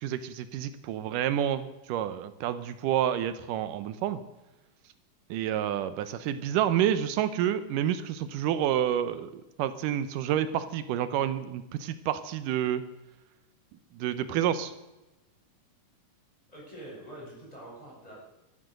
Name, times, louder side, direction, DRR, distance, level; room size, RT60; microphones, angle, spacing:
voice 1, 0.0-4.2 5.3-9.3 9.6-12.8 14.0-14.7, right 10 dB, 85° right, 12 dB, 2.4 m, -29 dB
voice 2, 16.5-18.2, right 1 dB, 10° left, -5 dB, 7.7 m, -45 dB
13.0 x 13.0 x 6.6 m, 0.98 s
omnidirectional pair, 3.7 m